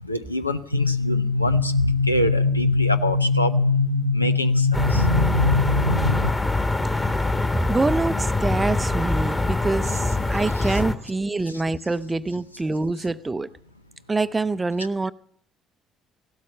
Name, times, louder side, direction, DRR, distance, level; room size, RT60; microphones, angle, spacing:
voice 1, 0.0-3.6 4.1-5.1 10.6-10.8, left 1 dB, 90° left, 0.6 m, -26 dB
sound 1, 0.7-6.3, left 3 dB, 90° right, 0.6 m, -22 dB
sound 2, 4.7-11.0, left 2 dB, 15° left, 1.5 m, -24 dB
voice 2, 6.8-7.3 7.7-13.5 14.1-15.1, right 3 dB, 20° right, 0.6 m, -26 dB
16.5 x 13.0 x 6.7 m
figure-of-eight pair, 50°, 0 cm